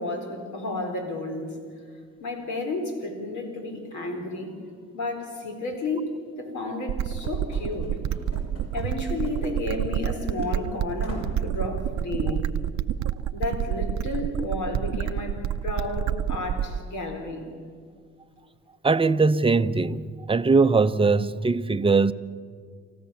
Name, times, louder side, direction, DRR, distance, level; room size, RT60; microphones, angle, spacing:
voice 1, 0.0-1.5 2.2-4.5 4.9-8.0 8.7-12.5 13.3-17.4, left 2 dB, 70° left, 4.4 m, -32 dB
sound 1, 6.9-16.9, right 10 dB, 70° right, 0.7 m, -28 dB
Run / Slam, 7.2-10.1 10.4-10.5 11.0-11.5, left 1 dB, 50° left, 5.9 m, -42 dB
voice 2, 18.8-22.1, right 4 dB, 20° right, 0.7 m, -21 dB
28.5 x 14.0 x 7.1 m
cardioid pair, 90°, 30 cm